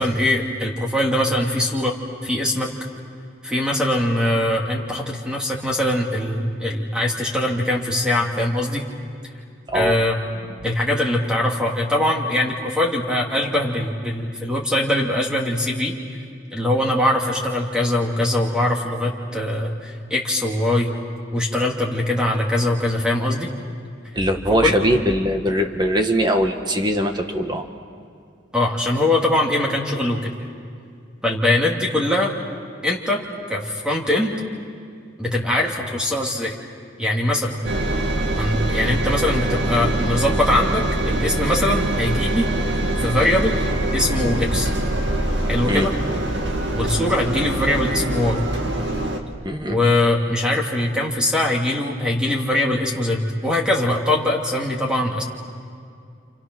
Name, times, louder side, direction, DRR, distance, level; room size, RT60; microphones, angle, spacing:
voice 1, 0.0-1.9 2.2-2.7 3.4-8.8 9.7-10.2 10.6-15.9 16.5-20.9 21.3-23.5 24.6-24.8 28.5-30.3 31.2-32.3 32.8-33.2 33.5-34.3 35.2-36.5 37.0-37.6 38.4-42.5 43.0-43.6 43.9-44.7 45.5-45.9 46.7-48.4 49.7-55.2, left 1 dB, 5° right, -1 dB, 2.5 m, -22 dB
voice 2, 24.1-27.7 45.7-45.9 49.4-49.8, equal, 20° right, 5 dB, 1.6 m, -21 dB
Engine, 37.6-49.2, right 1 dB, 65° right, 2.2 m, -23 dB
29.5 x 29.0 x 6.2 m, 2.3 s
head